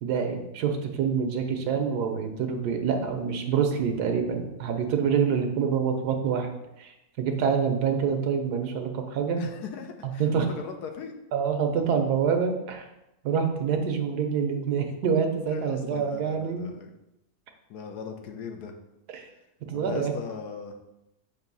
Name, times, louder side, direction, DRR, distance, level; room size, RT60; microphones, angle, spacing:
voice 1, 0.0-6.5 6.8-9.4 10.2-10.5 11.3-12.9 13.2-16.7 19.1-19.3 19.7-20.1, right 6 dB, 90° right, 5 dB, 1.4 m, -26 dB
voice 2, 9.4-11.1 15.5-16.9 17.7-18.8 19.7-20.8, left 6 dB, 85° left, 4 dB, 1.3 m, -39 dB
7.1 x 2.7 x 5.3 m, 0.90 s
omnidirectional pair, 1.7 m